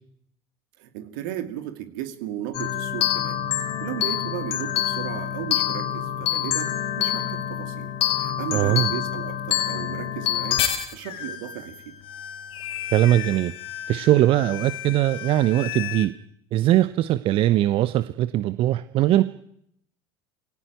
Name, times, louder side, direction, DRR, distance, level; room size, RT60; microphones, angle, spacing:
voice 1, 0.8-3.4 3.8-10.7 10.9-12.0, right 12 dB, 65° right, 8 dB, 2.5 m, -35 dB
sound 1, 2.5-16.1, left 11 dB, 50° left, 3.2 m, -28 dB
voice 2, 8.5-8.9 12.9-13.5 13.9-16.1 16.5-19.2, right 14 dB, 50° right, 14 dB, 0.9 m, -20 dB
23.0 x 17.5 x 9.3 m, 0.74 s
figure-of-eight pair, 70°, 12 cm